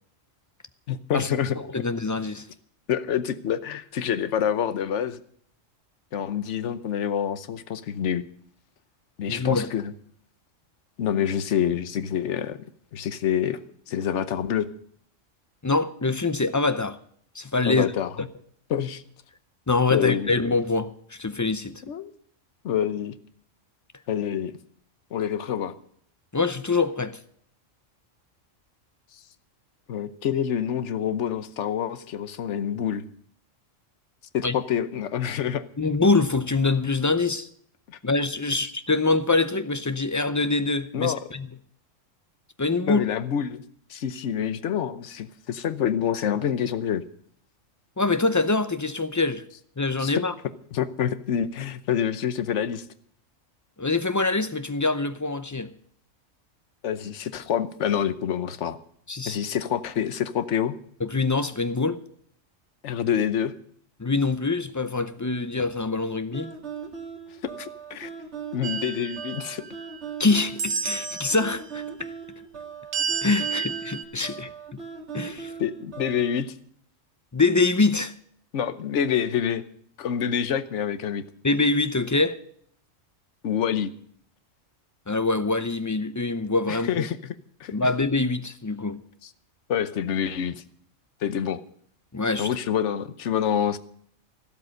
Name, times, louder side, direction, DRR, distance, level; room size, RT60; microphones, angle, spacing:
voice 1, 0.9-1.6 2.9-5.2 6.1-8.2 9.2-9.9 11.0-12.6 12.9-13.6 13.9-14.7 17.7-18.3 18.7-19.0 19.9-20.3 21.9-22.1 22.6-23.1 24.1-24.5 25.1-25.7 29.9-33.0 34.3-35.6 37.9-38.0 40.9-41.2 42.8-43.6 43.9-47.0 50.0-50.1 50.7-52.8 56.8-58.8 59.3-60.7 62.8-63.5 67.5-68.1 68.5-69.6 75.6-76.5 78.5-79.6 80.0-81.2 83.4-83.9 86.7-87.3 87.6-87.7 89.2-89.3 89.7-90.6 91.2-91.6 92.4-93.8, left 9 dB, 65° left, 1.2 m, -27 dB
voice 2, 1.7-2.5 9.3-9.7 15.6-17.0 17.3-17.9 19.7-21.8 26.3-27.2 34.4-34.5 35.8-37.5 38.0-41.5 42.6-43.0 48.0-49.4 49.8-50.3 53.8-55.7 59.1-59.4 61.0-62.0 64.0-66.5 70.2-71.8 73.2-74.5 75.1-75.5 77.3-78.1 81.4-82.4 85.1-87.1 87.7-89.0 92.1-92.5, left 3 dB, 25° left, 0.4 m, -24 dB
sound 1, 66.3-76.4, right 6 dB, 60° right, 2.9 m, -39 dB
sound 2, 68.6-70.1 70.6-71.5 72.9-74.0, right 6 dB, 80° right, 1.4 m, -31 dB
13.5 x 12.5 x 6.5 m
omnidirectional pair, 1.3 m